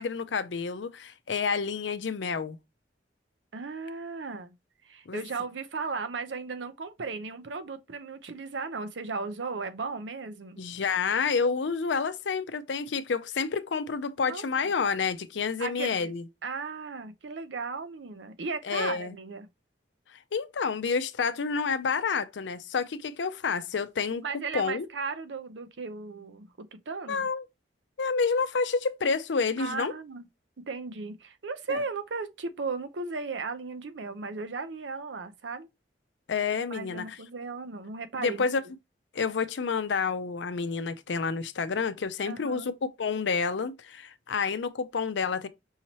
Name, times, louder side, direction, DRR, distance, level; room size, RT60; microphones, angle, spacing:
voice 1, 0.0-2.6 5.1-5.2 10.6-16.2 18.7-19.2 20.1-24.2 24.5-24.9 27.1-27.4 28.0-29.9 31.7-31.8 36.3-37.2 38.2-38.6 39.1-45.5, left 5 dB, 80° left, 0.5 m, -29 dB
voice 2, 3.5-4.6 4.8-10.6 14.3-14.5 15.6-16.1 16.4-19.5 24.2-27.3 29.6-30.3 30.7-35.7 36.7-38.4 42.2-42.7, right 4 dB, 80° right, 0.7 m, -36 dB
5.5 x 3.1 x 2.8 m
head